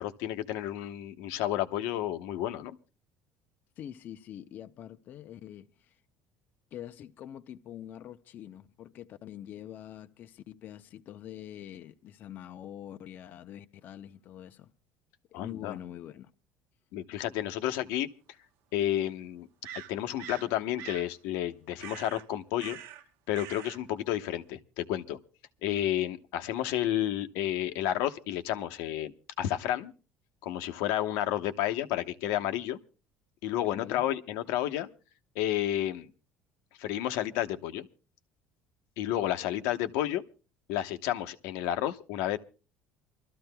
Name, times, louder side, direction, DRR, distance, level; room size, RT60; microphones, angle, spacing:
voice 1, 0.0-2.8 15.3-15.7 16.9-18.1 18.7-19.5 19.9-22.8 23.3-25.2 25.6-29.1 29.4-29.9 30.4-32.8 33.4-34.9 35.3-36.1 36.8-37.9 39.0-40.2 40.7-42.4, left 12 dB, 80° left, 0.9 m, -31 dB
voice 2, 3.8-6.0 6.7-14.7 15.3-16.3 33.7-34.0, left 11 dB, 40° left, 0.6 m, -45 dB
sound 1, 17.6-17.7 19.6-20.5 20.8-21.1 21.8-22.2 22.6-23.0 23.3-23.8, right 11 dB, 65° right, 0.8 m, -44 dB
28.5 x 13.5 x 2.2 m
cardioid pair, 155°, 5 cm